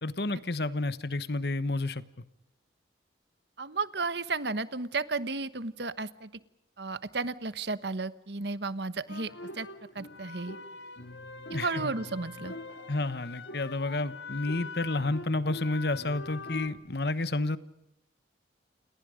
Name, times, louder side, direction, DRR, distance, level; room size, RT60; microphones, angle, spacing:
voice 1, 0.0-2.0 11.5-11.9 12.9-17.6, left 2 dB, 55° left, 15 dB, 1.2 m, -30 dB
voice 2, 3.6-6.3 6.8-9.7 9.9-10.6 11.5-12.5, right 3 dB, 65° right, 14 dB, 1.2 m, -33 dB
sound 1, 9.1-16.7, left 3 dB, 75° left, 2.3 m, -43 dB
30.0 x 29.0 x 5.1 m, 0.81 s
head